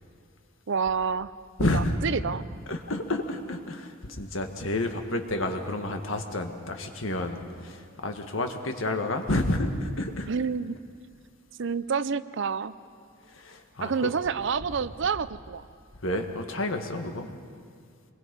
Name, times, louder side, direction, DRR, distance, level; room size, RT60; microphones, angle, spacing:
voice 1, 0.7-1.3 1.6-2.5 10.3-10.8 11.6-12.7 13.8-15.7, right 5 dB, 60° right, 15 dB, 0.6 m, -28 dB
voice 2, 1.6-1.9 2.7-10.3 13.3-14.1 16.0-17.3, left 1 dB, 70° left, 5 dB, 1.8 m, -30 dB
26.5 x 22.0 x 5.4 m, 2.1 s
head